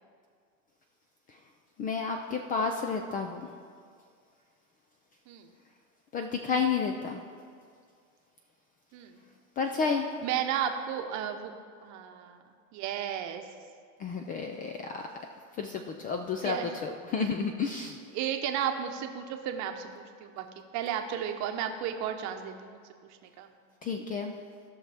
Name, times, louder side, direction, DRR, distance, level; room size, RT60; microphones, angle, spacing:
voice 1, 1.8-3.4 6.1-7.2 9.6-10.1 14.0-15.0 15.6-16.6 16.8-17.9 23.8-24.3, left 5 dB, 20° left, 4 dB, 0.3 m, -31 dB
voice 2, 10.2-11.5 11.8-12.4 12.7-13.4 16.4-16.8 17.2-17.3 17.7-17.9 18.1-20.5 20.7-22.8 23.4-23.5, right 9 dB, 45° right, 5 dB, 0.9 m, -33 dB
16.0 x 5.9 x 3.5 m, 2.1 s
supercardioid pair, 130°, 41 cm